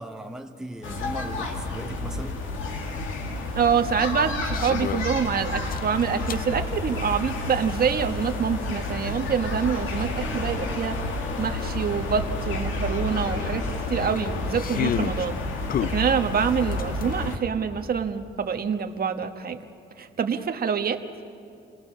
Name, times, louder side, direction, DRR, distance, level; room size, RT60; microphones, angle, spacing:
voice 1, 0.0-2.5, right 1 dB, 5° right, 1.0 m, -37 dB
sound 1, 0.8-17.4, left 2 dB, 90° left, 2.1 m, -30 dB
voice 2, 3.5-11.0 11.4-15.4 15.9-19.6 20.0-21.0, right 7 dB, 50° right, 1.2 m, -26 dB
sound 2, 4.5-5.2 5.7-6.5 7.9-8.0 10.7-10.8 11.0-11.1 11.6-11.8 13.4-15.3 15.7-17.1, left 10 dB, 45° left, 0.4 m, -31 dB
29.0 x 19.0 x 6.3 m
cardioid pair, 90°, 20 cm